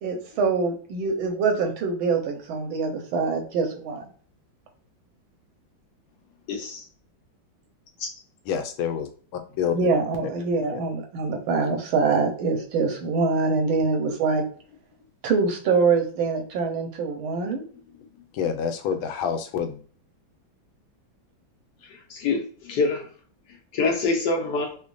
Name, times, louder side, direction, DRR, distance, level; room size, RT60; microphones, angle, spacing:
voice 1, 0.0-4.1 9.7-14.4 15.2-17.6, right 4 dB, 80° right, 1.6 m, -24 dB
voice 2, 6.5-6.8 8.0-8.1 22.1-23.1 23.7-24.8, left 3 dB, 70° left, 1.1 m, -25 dB
voice 3, 8.5-9.8 18.3-19.8, left 7 dB, 85° left, 1.4 m, -27 dB
5.1 x 2.2 x 2.5 m
omnidirectional pair, 2.2 m